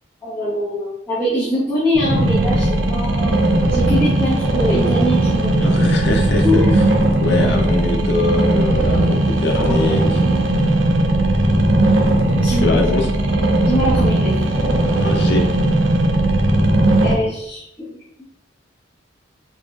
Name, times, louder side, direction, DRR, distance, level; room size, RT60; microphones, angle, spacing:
voice 1, 0.2-3.4 3.7-5.7 6.4-6.8 7.4-7.5 9.5-10.4 12.4-12.9 13.7-14.3 17.0-17.9, equal, 10° left, -11 dB, 1.1 m, -23 dB
sound 1, 1.9-17.1, right 1 dB, 85° right, 0.6 m, -17 dB
voice 2, 5.6-6.6 7.2-10.2 12.5-13.1 15.0-15.4, left 3 dB, 65° left, 2 dB, 0.6 m, -22 dB
5.1 x 2.4 x 2.5 m, 0.76 s
head